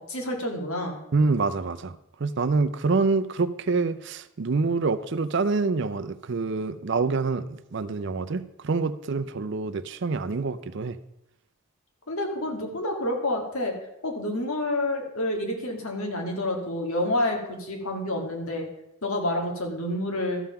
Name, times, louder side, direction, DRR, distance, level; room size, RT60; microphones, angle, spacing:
voice 1, 0.0-1.0 12.1-13.8 14.0-18.7 19.0-20.4, left 1 dB, 80° left, 2 dB, 1.9 m, -28 dB
voice 2, 1.1-1.9 2.2-11.0, right 4 dB, 55° right, 12 dB, 0.5 m, -26 dB
13.0 x 5.6 x 5.8 m, 0.84 s
head